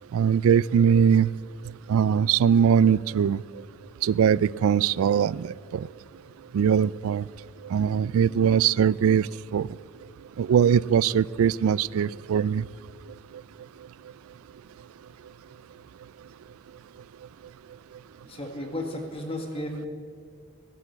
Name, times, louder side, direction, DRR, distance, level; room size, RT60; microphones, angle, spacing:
voice 1, 0.1-1.3 1.9-3.4 4.0-5.9 6.5-7.2 7.7-9.3 9.5-9.7 10.4-12.6, right 7 dB, 90° right, 22 dB, 0.3 m, -21 dB
voice 2, 18.2-19.9, left 1 dB, 25° left, 4 dB, 1.9 m, -33 dB
17.0 x 10.5 x 8.0 m, 2.1 s
head